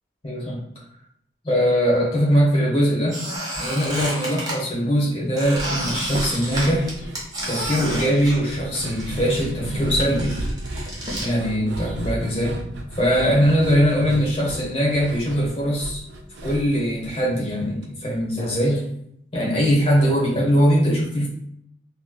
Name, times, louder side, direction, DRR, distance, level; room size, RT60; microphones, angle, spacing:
voice 1, 0.2-0.6 1.4-3.2 3.6-7.0 7.5-10.4 11.2-12.5 13.0-16.0 16.4-18.9 19.3-21.3, equal, 30° left, -4 dB, 1.0 m, -21 dB
Squeak, 3.1-4.6 5.4-9.1 9.3-11.3, right 1 dB, 20° right, 0.8 m, -30 dB
sound 1, 5.6-17.8 18.1-18.2 18.6-18.7, right 1 dB, 75° right, 0.4 m, -33 dB
4.2 x 2.1 x 2.2 m, 0.72 s
head